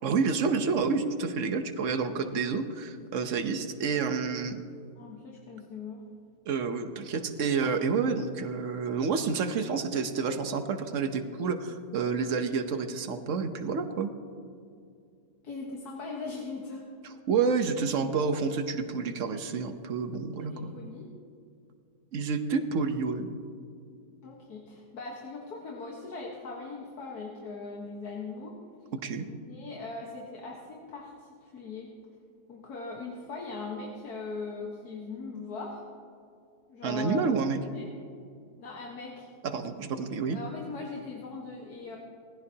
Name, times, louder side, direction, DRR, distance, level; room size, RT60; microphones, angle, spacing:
voice 1, 0.0-4.6 6.5-14.1 17.0-20.7 22.1-23.3 29.0-29.2 36.8-37.6 39.4-40.4, right 5 dB, 55° right, 8 dB, 1.2 m, -29 dB
voice 2, 2.0-2.5 5.0-6.0 15.4-16.8 20.4-21.1 24.2-28.6 29.3-31.9 32.5-35.9 36.7-37.3 37.7-37.9 38.6-39.3 40.2-42.0, left 4 dB, 80° left, -1 dB, 1.9 m, -40 dB
19.5 x 15.0 x 2.9 m, 2.4 s
omnidirectional pair, 1.7 m